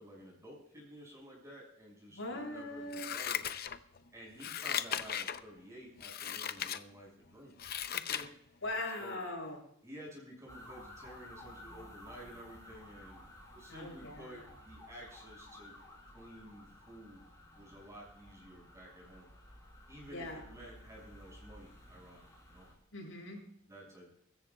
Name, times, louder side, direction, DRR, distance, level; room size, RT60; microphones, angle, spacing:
voice 1, 0.0-3.4 4.1-7.6 7.9-8.3 9.0-9.2 9.8-13.2 13.5-15.7 16.1-17.2 17.5-19.3 19.9-22.7 23.6-24.1, equal, 15° right, -3 dB, 5.9 m, -52 dB
voice 2, 2.1-3.0 8.6-9.6 13.7-14.4 20.1-20.4 22.9-23.4, left 2 dB, 70° left, -1 dB, 7.5 m, -40 dB
Scissors, 2.9-4.0 4.4-5.4 6.0-6.8 7.3-8.3 8.7-8.8, left 9 dB, 50° left, 0.7 m, -37 dB
sound 1, 10.5-22.7, left 1 dB, 15° left, 5.2 m, -54 dB
24.0 x 14.0 x 2.4 m, 0.71 s
head